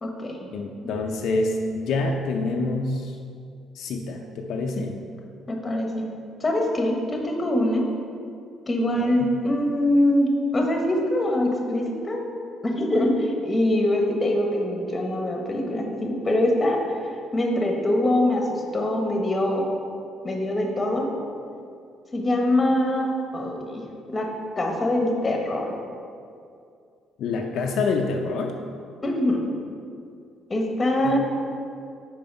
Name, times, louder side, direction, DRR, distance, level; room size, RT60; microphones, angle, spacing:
voice 1, 0.0-0.5 5.5-6.1 6.4-7.9 8.7-12.2 12.6-16.8 17.3-19.7 20.2-21.1 22.1-23.8 24.1-24.3 24.6-25.7 29.0-29.4 30.5-31.2, left 1 dB, 20° left, 1 dB, 1.0 m, -23 dB
voice 2, 0.5-3.1 3.8-5.0 8.9-9.3 27.2-28.5 31.0-31.2, left 3 dB, 70° left, 2 dB, 0.5 m, -27 dB
5.6 x 4.7 x 5.3 m, 2.4 s
cardioid pair, 110°, 0 cm